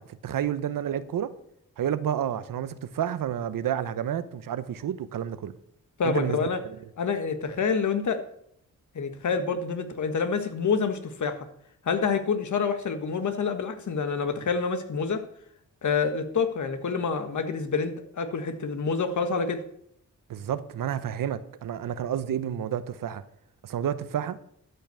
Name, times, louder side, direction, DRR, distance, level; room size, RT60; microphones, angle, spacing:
voice 1, 0.0-1.3 1.8-5.5 6.0-6.8 20.3-23.2 23.6-24.4, right 9 dB, 75° right, 0.9 m, -30 dB
voice 2, 6.0-6.6 7.0-8.2 8.9-11.5 11.8-15.2 15.8-19.6, left 5 dB, 60° left, 1.4 m, -27 dB
12.5 x 5.7 x 6.9 m
cardioid pair, 85°, 33 cm